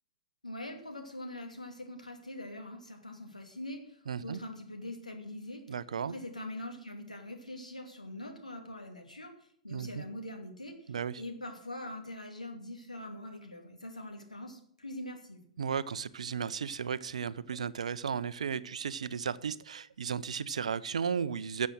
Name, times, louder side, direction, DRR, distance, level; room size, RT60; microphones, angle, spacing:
voice 1, 0.4-5.6 6.1-9.3 9.6-10.7 11.2-15.4, left 1 dB, 85° left, 3 dB, 2.6 m, -43 dB
voice 2, 4.1-4.4 5.7-6.1 9.7-10.1 10.9-11.2 15.6-21.7, right 7 dB, 65° right, 17 dB, 0.6 m, -34 dB
13.0 x 7.5 x 6.5 m, 0.64 s
figure-of-eight pair, 105°, 4 cm